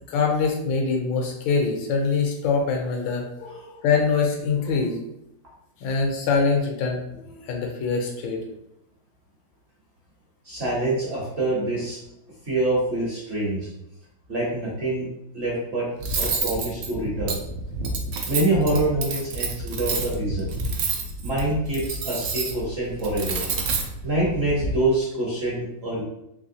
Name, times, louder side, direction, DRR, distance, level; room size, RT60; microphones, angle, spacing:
voice 1, 0.1-5.0 5.8-8.4, left 4 dB, 85° left, 2 dB, 1.5 m, -24 dB
voice 2, 10.4-12.0 12.4-13.7 14.3-15.1 15.3-15.9 16.2-17.4 18.3-20.5 21.2-23.4 24.0-26.0, right 2 dB, 50° right, -5 dB, 0.8 m, -25 dB
Cutlery silverware, 16.0-24.7, right 3 dB, 80° right, 0.7 m, -29 dB
3.4 x 3.0 x 2.7 m, 0.83 s
omnidirectional pair, 2.1 m